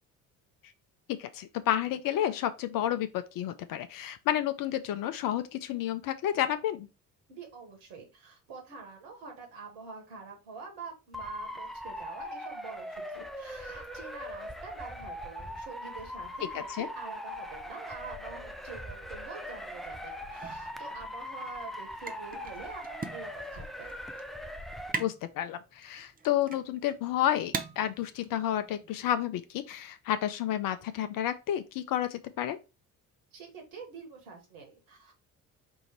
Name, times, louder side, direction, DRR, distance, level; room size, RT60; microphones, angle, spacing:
voice 1, 1.1-6.9 16.8-16.9 25.0-32.6, left 11 dB, 50° left, 0.6 m, -31 dB
voice 2, 7.3-24.0 33.3-35.1, right 4 dB, 65° right, 1.7 m, -46 dB
Motor vehicle (road) / Siren, 11.1-24.9, equal, ahead, 0.3 m, -41 dB
sound 1, 20.4-29.2, right 4 dB, 20° right, 0.7 m, -42 dB
4.7 x 2.6 x 4.4 m
figure-of-eight pair, 50°, 45 cm